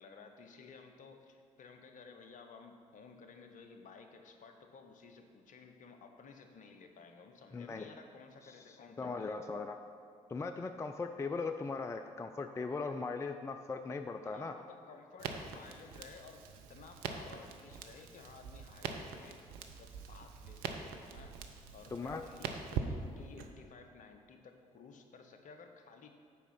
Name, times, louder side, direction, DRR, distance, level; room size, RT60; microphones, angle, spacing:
voice 1, 0.0-9.4 14.2-21.3 21.7-26.1, left 5 dB, 45° left, 5 dB, 0.8 m, -55 dB
voice 2, 7.5-7.9 9.0-9.8 10.3-14.5 21.9-22.2, left 4 dB, 15° left, 7 dB, 0.3 m, -39 dB
Crackle, 15.2-23.5, right 6 dB, 60° right, 0.6 m, -43 dB
8.2 x 5.0 x 5.7 m, 2.2 s
figure-of-eight pair, 45°, 18 cm